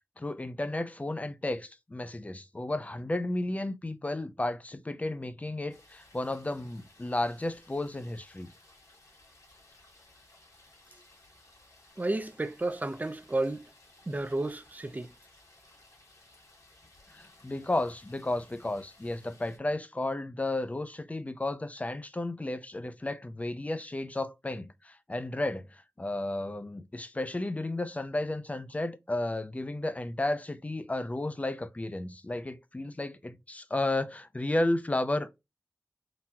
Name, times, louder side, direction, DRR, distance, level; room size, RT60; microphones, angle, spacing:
voice 1, 0.2-8.5 17.1-35.4, left 2 dB, 25° left, 0.5 m, -33 dB
sound 1, 5.7-19.6, left 2 dB, 85° left, 2.0 m, -59 dB
voice 2, 12.0-13.7 14.1-15.1, right 2 dB, 30° right, 0.5 m, -32 dB
3.9 x 2.8 x 2.2 m
wide cardioid pair, 80°, 5 cm